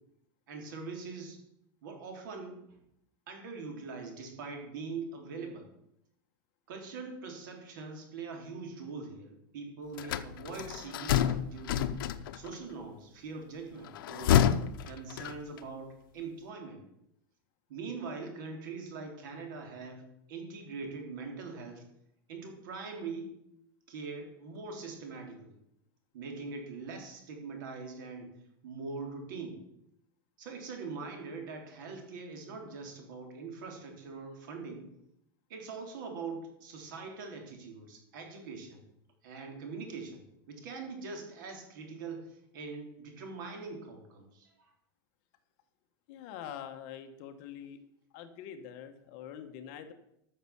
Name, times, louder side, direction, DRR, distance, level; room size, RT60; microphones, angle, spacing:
voice 1, 0.5-1.4 1.8-2.8 3.3-5.7 6.7-12.0 12.3-14.6 14.8-16.8 17.7-20.0 20.3-21.9 22.3-23.3 23.9-25.6 26.1-28.3 28.6-29.6 30.4-34.9 35.5-38.8 39.2-40.2 40.5-44.7, right 4 dB, 65° right, 2 dB, 3.7 m, -42 dB
sound 1, 10.0-12.5 13.9-15.7, left 10 dB, 80° left, 0.8 m, -28 dB
voice 2, 46.1-47.8 48.1-49.9, left 9 dB, 40° left, 7 dB, 1.3 m, -44 dB
13.5 x 6.7 x 7.1 m, 0.80 s
supercardioid pair, 175°, 12 cm